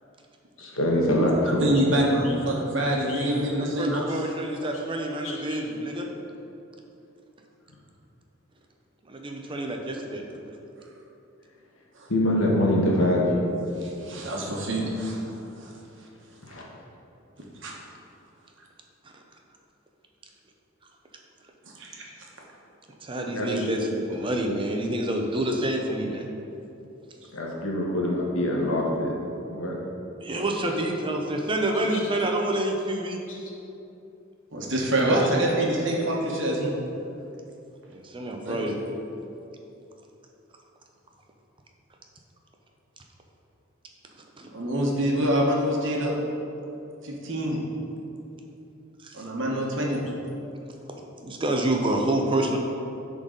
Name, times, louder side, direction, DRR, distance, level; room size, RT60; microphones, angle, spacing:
voice 1, 0.6-1.6 2.1-2.4 3.1-3.3 5.2-5.6 12.1-13.4 16.5-16.7 23.3-23.7 27.3-29.1 29.5-29.7 33.3-33.4, left 1 dB, 80° left, -2 dB, 1.2 m, -24 dB
voice 2, 1.6-4.0 13.8-15.2 15.6-15.7 17.6-17.7 21.8-22.0 34.5-36.7 38.4-38.6 44.5-46.1 47.0-47.6 49.1-50.0, right 1 dB, 65° right, -2 dB, 1.2 m, -25 dB
voice 3, 3.6-6.1 9.1-10.2 19.0-19.2 23.0-26.3 30.2-33.2 37.9-38.8 44.4-44.5 49.0-49.3 51.2-52.6, right 1 dB, 25° right, 2 dB, 0.6 m, -28 dB
10.5 x 3.9 x 3.8 m, 2.8 s
head